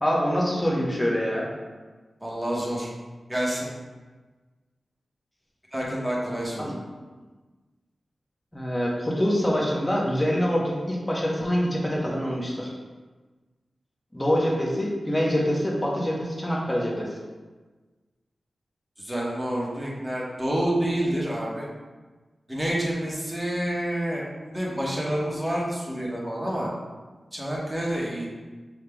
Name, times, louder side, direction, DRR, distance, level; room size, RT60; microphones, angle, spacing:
voice 1, 0.0-1.5 6.6-6.7 8.5-12.7 14.1-17.1, equal, 10° left, -4 dB, 0.9 m, -25 dB
voice 2, 2.2-2.9 3.3-3.7 5.7-6.8 19.0-21.7 22.5-26.7 27.3-28.3, right 1 dB, 10° right, -5 dB, 1.1 m, -28 dB
6.4 x 3.5 x 2.3 m, 1.3 s
wide cardioid pair, 115°, 0 cm